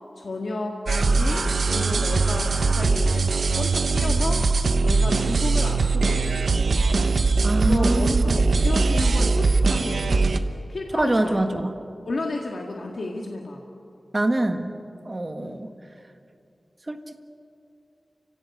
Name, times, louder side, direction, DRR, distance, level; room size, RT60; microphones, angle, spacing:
voice 1, 0.2-3.3 3.6-4.5 4.8-6.7 7.5-10.1 10.7-11.7 12.1-13.6 15.4-15.6, left 2 dB, 65° left, 1 dB, 1.9 m, -32 dB
sound 1, 0.9-10.4, right 3 dB, 85° right, 1.0 m, -21 dB
voice 2, 7.4-8.4 10.9-11.7 14.1-14.7 15.0-15.7 16.9-17.2, right 1 dB, 30° right, 7 dB, 1.5 m, -24 dB
30.0 x 16.5 x 8.5 m, 2.6 s
wide cardioid pair, 105°, 0 cm